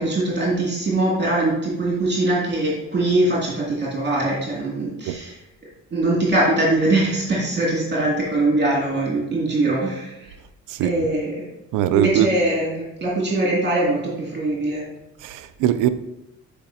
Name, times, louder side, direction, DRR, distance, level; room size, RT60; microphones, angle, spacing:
voice 1, 0.0-5.4 5.9-10.1 10.8-11.5 11.9-14.8, right 2 dB, 35° right, 2.3 m, -22 dB
voice 2, 11.7-12.3 15.2-15.9, right 11 dB, 90° right, 0.5 m, -21 dB
8.7 x 5.0 x 2.7 m
cardioid pair, 90°, 30 cm